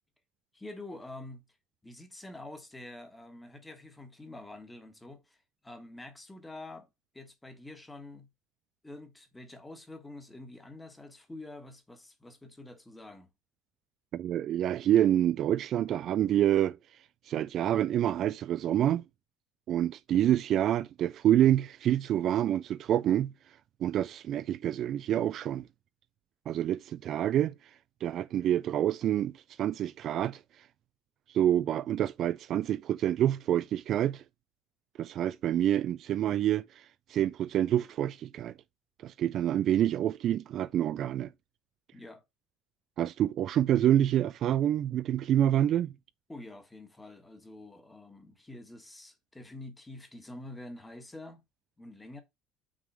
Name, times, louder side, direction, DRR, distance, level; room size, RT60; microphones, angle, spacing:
voice 1, 0.5-1.4 1.8-6.9 7.1-8.3 8.8-13.3 41.9-42.2 46.3-51.4 51.8-52.2, left 2 dB, 10° left, 1.4 m, -47 dB
voice 2, 14.1-16.8 17.3-19.0 19.7-23.3 23.8-25.7 26.5-27.5 28.0-29.3 29.6-30.4 31.3-34.2 35.0-36.6 37.1-38.5 39.0-41.3 43.0-45.9, right 11 dB, 45° right, 0.3 m, -27 dB
6.2 x 3.7 x 6.0 m
cardioid pair, 135°, 0 cm